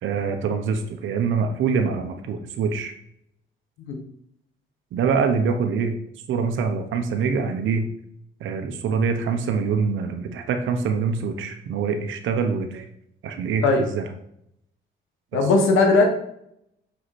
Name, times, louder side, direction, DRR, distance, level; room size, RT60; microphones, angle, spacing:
voice 1, 0.0-2.9 4.9-5.9 6.3-7.8 8.4-12.8 13.2-14.0 15.3-15.4, right 5 dB, 80° right, 6 dB, 1.1 m, -24 dB
voice 2, 15.3-16.1, left 3 dB, 85° left, 3 dB, 1.5 m, -18 dB
6.7 x 4.9 x 4.3 m, 0.74 s
cardioid pair, 90°, 20 cm